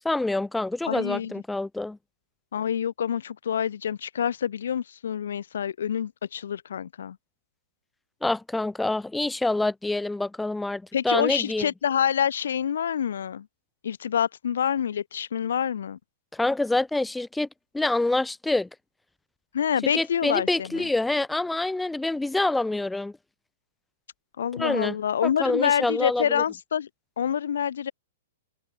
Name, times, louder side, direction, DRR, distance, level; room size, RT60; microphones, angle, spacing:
voice 1, 0.0-2.0 8.2-11.7 16.3-17.5 17.7-18.7 19.9-23.1 24.5-24.9 25.2-26.4, left 2 dB, 5° left, 1.3 m, -26 dB
voice 2, 0.9-1.3 2.5-7.2 10.9-13.5 13.8-16.0 19.5-20.9 24.4-26.9 27.2-27.9, left 8 dB, 80° left, 1.8 m, -27 dB
hypercardioid pair, 175°, 0 cm